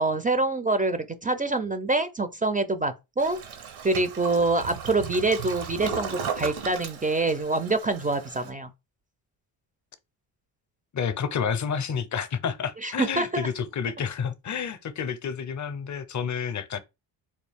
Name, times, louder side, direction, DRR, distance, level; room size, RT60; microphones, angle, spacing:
voice 1, 0.0-3.4 3.8-8.7 12.8-13.5, right 2 dB, 20° right, 0.4 m, -25 dB
Toilet flush, 3.2-8.5, right 7 dB, 80° right, 1.0 m, -36 dB
voice 2, 10.9-16.8, left 7 dB, 35° left, 0.6 m, -30 dB
4.2 x 2.3 x 3.4 m
cardioid pair, 80°, 49 cm